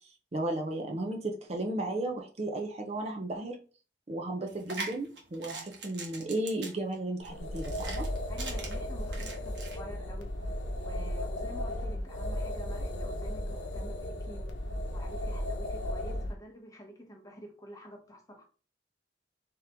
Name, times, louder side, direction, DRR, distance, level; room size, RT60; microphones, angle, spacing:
voice 1, 0.3-3.6 4.1-8.0, right 1 dB, 35° right, 0.5 m, -34 dB
sound 1, 4.5-9.8, right 3 dB, 70° right, 1.1 m, -42 dB
sound 2, 7.2-16.3, left 1 dB, 80° left, 0.8 m, -35 dB
voice 2, 8.3-10.3 10.8-14.6 14.9-18.4, equal, 20° left, 0.9 m, -48 dB
3.7 x 2.9 x 3.4 m
head